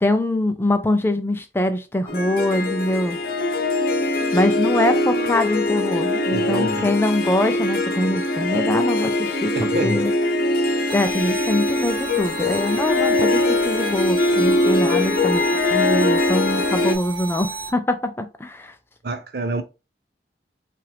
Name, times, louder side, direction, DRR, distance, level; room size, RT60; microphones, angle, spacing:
voice 1, 0.0-3.2 4.3-10.1 10.9-18.7, left 1 dB, 15° left, 0.4 m, -23 dB
Harp, 2.1-16.9, left 2 dB, 55° left, 0.7 m, -22 dB
voice 2, 6.3-6.9 9.5-10.0 19.0-19.6, right 2 dB, 65° right, 0.6 m, -27 dB
sound 1, 10.9-17.7, right 3 dB, 25° right, 0.7 m, -34 dB
5.6 x 2.5 x 3.3 m
head